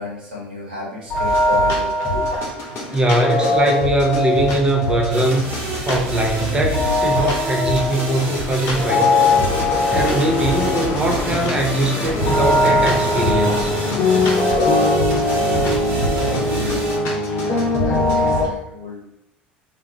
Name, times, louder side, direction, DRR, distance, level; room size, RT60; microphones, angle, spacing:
voice 1, 0.0-3.1 3.4-3.6 15.1-19.1, left 2 dB, 80° right, -4 dB, 1.2 m, -34 dB
sound 1, 1.1-18.5, left 1 dB, 55° left, 0.8 m, -20 dB
voice 2, 2.9-5.5 5.9-9.2 9.7-13.7, right 1 dB, 15° right, 1 dB, 0.7 m, -21 dB
sound 2, 5.1-17.0, right 2 dB, 60° right, 1.0 m, -28 dB
sound 3, 8.8-15.0, left 4 dB, 40° left, 0.5 m, -30 dB
2.7 x 2.4 x 2.9 m, 0.78 s
figure-of-eight pair, 65°, 5 cm